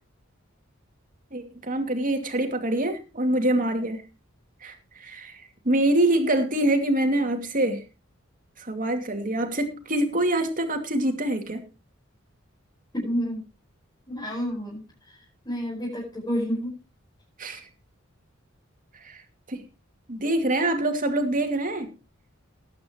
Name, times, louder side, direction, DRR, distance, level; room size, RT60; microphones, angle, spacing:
voice 1, 1.3-4.0 4.6-4.7 5.0-5.4 5.6-7.8 8.6-11.6 17.4-17.6 19.0-19.2 19.5-19.6 20.1-21.9, right 1 dB, 45° right, 5 dB, 2.5 m, -25 dB
voice 2, 12.9-13.4 14.1-14.8 15.1-15.2 15.5-16.7, equal, 20° left, -5 dB, 5.3 m, -29 dB
19.5 x 9.4 x 3.1 m, 0.29 s
head